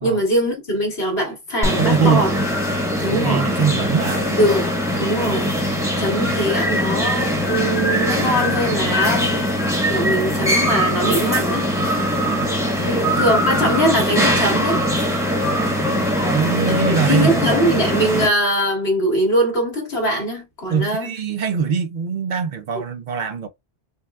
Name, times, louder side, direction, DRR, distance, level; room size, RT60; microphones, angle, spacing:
voice 1, 0.0-2.3 3.0-3.4 4.4-5.5 6.0-9.5 9.9-11.7 12.8-14.8 16.7-21.1, equal, 75° left, 2.0 m, -22 dB
sound 1, 1.6-18.3, equal, 5° right, 0.9 m, -21 dB
voice 2, 1.8-2.3 3.1-4.5 12.2-12.5 12.8-13.0 15.6-17.6 20.7-23.5, right 6 dB, 55° right, 0.6 m, -23 dB
5.4 x 2.3 x 2.3 m
omnidirectional pair, 1.1 m